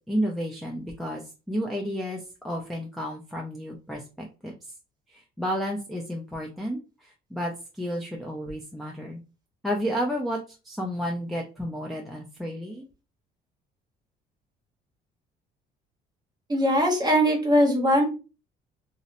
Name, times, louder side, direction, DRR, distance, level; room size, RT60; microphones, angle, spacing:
voice 1, 0.1-1.2 1.5-4.7 5.1-9.2 9.6-12.9, equal, ahead, -1 dB, 0.4 m, -32 dB
voice 2, 16.5-18.1, equal, 25° right, 2 dB, 0.9 m, -21 dB
2.7 x 2.0 x 2.5 m, 0.32 s
cardioid pair, 110°, 17 cm